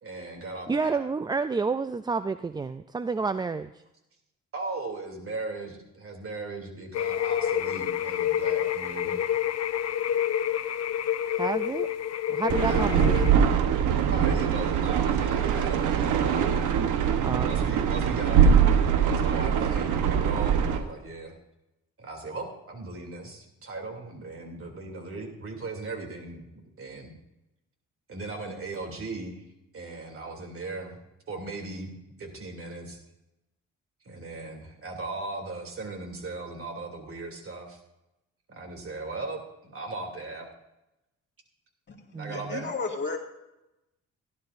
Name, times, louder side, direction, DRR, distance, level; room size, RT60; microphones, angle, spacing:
voice 1, 0.0-1.1 4.5-9.2 12.6-12.9 14.1-16.7 17.3-21.3 22.0-27.2 28.1-29.4 29.7-31.0 31.3-31.9 32.2-33.0 34.0-37.8 38.5-40.5 42.2-42.7, right 3 dB, 45° right, 3 dB, 2.9 m, -37 dB
voice 2, 0.7-3.7 11.3-11.9 12.3-13.6 17.2-17.8 42.1-42.7, right 4 dB, 15° right, 12 dB, 0.3 m, -30 dB
sound 1, 6.9-13.3, left 10 dB, 55° left, 0.8 m, -28 dB
sound 2, 12.5-20.8, right 7 dB, 85° right, 1.1 m, -23 dB
voice 3, 41.9-43.2, left 4 dB, 35° left, 2 dB, 2.1 m, -34 dB
16.5 x 11.5 x 2.6 m, 0.92 s
cardioid pair, 90°, 30 cm